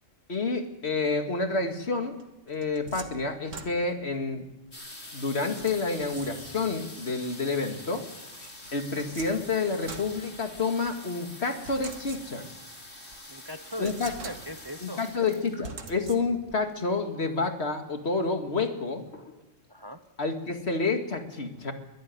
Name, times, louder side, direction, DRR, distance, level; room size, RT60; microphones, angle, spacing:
voice 1, 0.3-2.2 2.5-4.4 5.1-8.1 8.7-12.5 13.8-14.1 14.8-19.0 20.2-21.7, left 3 dB, 55° left, 6 dB, 2.3 m, -29 dB
sound 1, 2.2-4.2 5.6-6.8 8.4-10.9 11.7-12.7 13.1-13.2 13.7-14.8 15.6-16.6, right 4 dB, 75° right, 2.0 m, -44 dB
sound 2, 4.7-17.3 18.1-18.2 18.4-18.8 19.1-19.7 20.2-20.3 20.5-20.6, left 2 dB, 75° left, 5.2 m, -46 dB
voice 2, 13.3-15.0 19.7-20.0, equal, 20° right, 9 dB, 0.8 m, -40 dB
22.5 x 13.5 x 9.6 m, 1.0 s
omnidirectional pair, 1.3 m